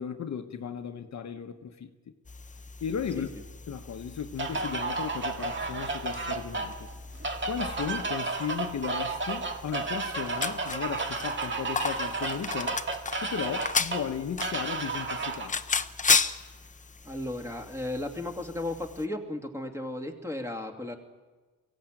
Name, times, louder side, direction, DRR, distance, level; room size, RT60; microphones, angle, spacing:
voice 1, 0.0-2.1 2.8-3.3 3.7-6.9 7.4-12.8 13.2-15.7, left 7 dB, 50° left, 1.2 m, -35 dB
sound 1, 2.2-19.1, left 5 dB, 20° left, 0.8 m, -35 dB
sound 2, 4.4-15.5, right 3 dB, 35° right, 1.9 m, -32 dB
voice 2, 17.0-21.0, left 1 dB, 10° right, 2.4 m, -35 dB
23.0 x 16.0 x 9.1 m
cardioid pair, 125°, 34 cm